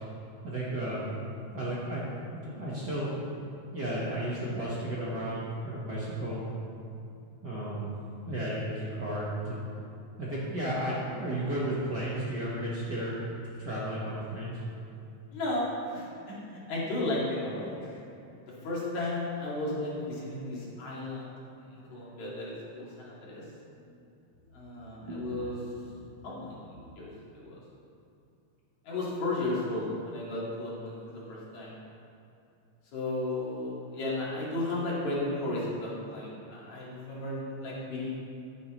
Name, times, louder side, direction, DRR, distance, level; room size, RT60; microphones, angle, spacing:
voice 1, 0.4-1.1 1.5-2.1 2.3-3.1 3.7-6.5 7.4-7.9 8.3-9.6 10.2-13.2 13.6-14.6 24.6-25.3 25.9-26.0, right 1 dB, 45° right, -7 dB, 1.5 m, -33 dB
voice 2, 15.3-18.0 18.6-21.4 21.7-23.4 24.5-25.6 26.2-27.6 28.8-31.7 32.9-38.1, left 2 dB, 70° left, -7 dB, 3.6 m, -34 dB
14.0 x 9.4 x 3.2 m, 2.6 s
omnidirectional pair, 3.4 m